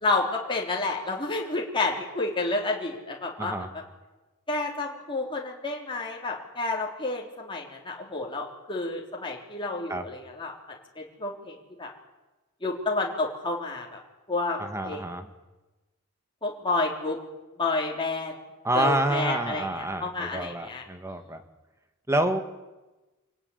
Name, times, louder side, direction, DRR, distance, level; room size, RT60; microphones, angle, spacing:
voice 1, 0.0-3.5 4.5-10.5 11.0-11.9 12.6-14.0 14.3-14.6 14.8-15.0 16.4-17.2 17.6-18.3 18.8-20.8, left 3 dB, 25° left, -1 dB, 3.6 m, -30 dB
voice 2, 3.4-3.7 9.9-10.1 14.6-15.3 18.6-21.4 22.1-22.4, right 1 dB, 15° right, 8 dB, 2.0 m, -28 dB
27.0 x 18.5 x 9.8 m, 1.1 s
head